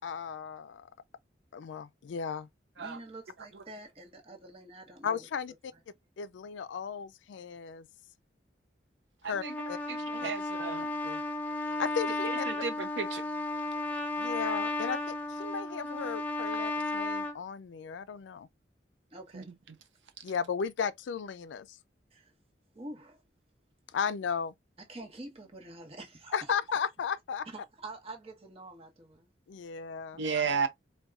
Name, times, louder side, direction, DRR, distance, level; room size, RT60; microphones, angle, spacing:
voice 1, 0.0-0.9 1.5-2.5 5.0-5.7 6.2-7.9 9.2-9.8 10.2-10.3 10.7-11.2 11.8-12.5 14.2-18.5 20.2-21.8 23.9-24.5 26.3-27.5 29.5-30.2, left 6 dB, 80° left, 0.4 m, -35 dB
voice 2, 2.8-5.3 19.1-19.5 22.1-22.3 22.7-23.2 24.9-26.6 27.5-29.3, right 2 dB, 35° right, 0.9 m, -46 dB
Trumpet, 9.3-17.3, left 2 dB, 10° left, 0.6 m, -34 dB
voice 3, 10.1-10.9 12.5-13.2 19.3-19.4 30.2-30.7, right 5 dB, 80° right, 0.6 m, -32 dB
4.1 x 2.2 x 2.3 m
head